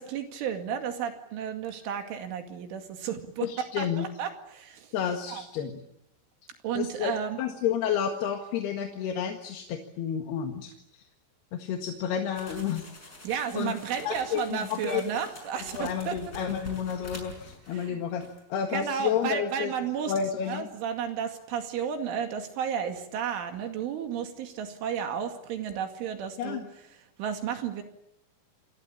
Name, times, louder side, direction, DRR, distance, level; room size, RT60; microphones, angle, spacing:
voice 1, 0.0-4.9 5.3-5.4 6.6-7.4 13.2-16.3 17.7-18.0 18.7-20.1 20.4-26.6 27.2-27.8, right 8 dB, 75° right, 6 dB, 4.6 m, -33 dB
voice 2, 3.4-4.1 4.9-5.8 6.7-7.1 7.4-11.0 11.5-12.9 13.3-13.7 14.0-15.0 15.7-18.2 18.5-19.7 20.1-20.7 26.4-26.6, left 8 dB, 60° left, 4 dB, 3.4 m, -30 dB
sound 1, 12.3-17.9 18.2-18.4, left 1 dB, 20° left, 6.5 m, -46 dB
29.0 x 22.5 x 8.7 m, 0.78 s
omnidirectional pair, 5.8 m